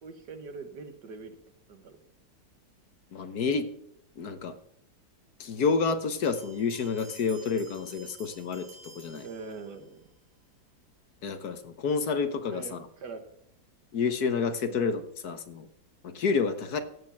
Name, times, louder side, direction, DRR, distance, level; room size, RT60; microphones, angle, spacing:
voice 1, 0.0-1.4 1.7-2.0 9.2-10.0 12.5-13.2 14.6-14.8, right 4 dB, 65° right, 8 dB, 1.9 m, -42 dB
voice 2, 3.1-3.7 4.2-4.5 5.4-9.3 11.2-12.8 13.9-15.7 16.0-16.8, left 5 dB, 60° left, 9 dB, 1.4 m, -29 dB
sound 1, 6.2-10.0, right 3 dB, 85° right, 2.7 m, -52 dB
15.0 x 8.5 x 5.7 m, 0.74 s
omnidirectional pair, 2.0 m